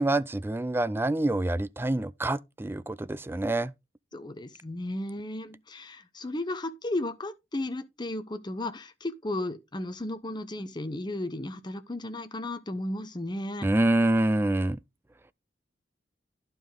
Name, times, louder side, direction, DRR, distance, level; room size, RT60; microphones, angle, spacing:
voice 1, 0.0-3.7 13.6-14.8, right 1 dB, 10° right, 0.4 m, -26 dB
voice 2, 4.1-13.7, left 1 dB, 25° left, 0.9 m, -34 dB
11.5 x 5.2 x 3.6 m
head